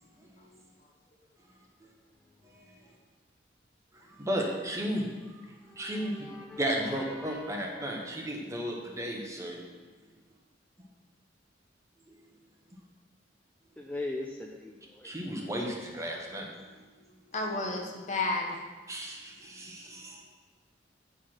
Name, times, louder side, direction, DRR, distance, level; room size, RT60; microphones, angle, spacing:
voice 1, 0.2-0.5 1.8-1.9 2.4-2.8 3.9-6.3 6.6-9.6 12.1-12.2 15.0-16.5 18.9-20.2, equal, 15° right, 0 dB, 0.9 m, -35 dB
voice 2, 5.6-7.7 13.8-15.1, left 2 dB, 10° left, 0 dB, 0.4 m, -41 dB
voice 3, 17.3-18.6, left 2 dB, 40° left, 1 dB, 1.0 m, -31 dB
9.0 x 4.8 x 4.3 m, 1.4 s
head